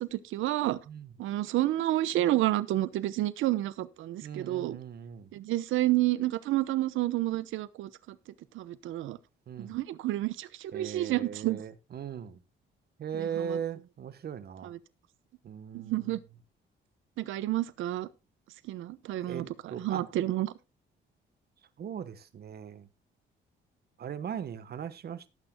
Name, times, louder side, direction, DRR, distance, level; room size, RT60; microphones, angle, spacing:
voice 1, 0.0-0.8 1.2-4.8 5.3-7.9 8.5-9.2 9.6-11.6 13.2-13.6 14.6-14.8 15.7-16.2 17.2-18.1 18.7-19.4 19.8-20.5, right 15 dB, 85° right, 0.9 m, -30 dB
voice 2, 4.2-5.3 9.5-9.8 10.7-12.4 13.0-14.7 15.4-16.1 19.2-20.1 21.8-22.9 24.0-25.2, right 8 dB, 50° right, 1.2 m, -39 dB
18.5 x 9.0 x 2.3 m
cardioid pair, 90°, 20 cm